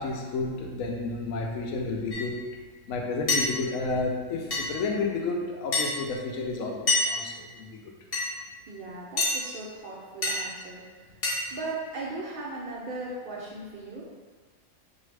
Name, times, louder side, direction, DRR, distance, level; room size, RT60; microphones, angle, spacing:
voice 1, 0.0-2.4 2.9-7.8, left 3 dB, 80° left, 1 dB, 1.0 m, -31 dB
sound 1, 2.1-2.2 3.3-3.5 4.5-4.7 5.7-5.9 6.9-7.1 8.1-8.3 9.2-9.4 10.2-10.4 11.2-11.3, left 3 dB, 50° left, 1.0 m, -25 dB
voice 2, 8.7-10.8 11.5-14.0, right 2 dB, 65° right, -5 dB, 0.5 m, -37 dB
4.0 x 2.7 x 3.2 m, 1.4 s
omnidirectional pair, 1.4 m